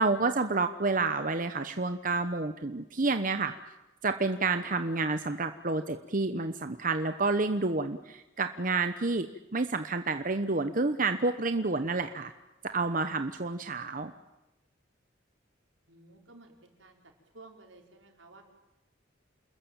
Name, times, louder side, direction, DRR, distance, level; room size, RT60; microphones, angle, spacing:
voice 1, 0.0-3.5 4.0-12.3 12.7-14.1, right 3 dB, 45° right, 8 dB, 1.0 m, -29 dB
voice 2, 15.9-17.0 17.3-18.4, right 2 dB, 80° right, 2 dB, 5.0 m, -54 dB
28.5 x 21.0 x 9.0 m, 1.0 s
head